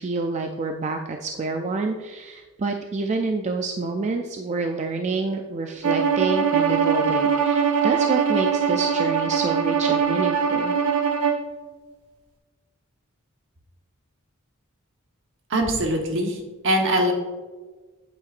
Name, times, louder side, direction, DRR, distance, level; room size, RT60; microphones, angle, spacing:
voice 1, 0.0-10.7, right 3 dB, 30° right, 4 dB, 0.4 m, -28 dB
Bowed string instrument, 5.8-11.5, right 6 dB, 80° right, 0.8 m, -22 dB
voice 2, 15.5-17.1, right 1 dB, 60° right, 2 dB, 1.2 m, -22 dB
8.5 x 7.6 x 2.5 m, 1.3 s
head